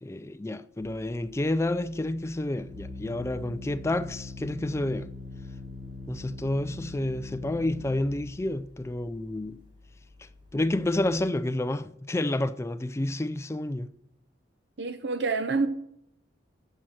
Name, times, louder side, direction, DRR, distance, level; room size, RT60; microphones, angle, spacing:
voice 1, 0.0-5.1 6.1-9.6 10.2-13.9, left 1 dB, 15° left, 0.4 m, -29 dB
Organ, 0.8-11.3, left 3 dB, 25° right, 6.8 m, -42 dB
voice 2, 14.8-15.7, right 4 dB, 70° right, 0.7 m, -27 dB
13.0 x 7.7 x 7.7 m
head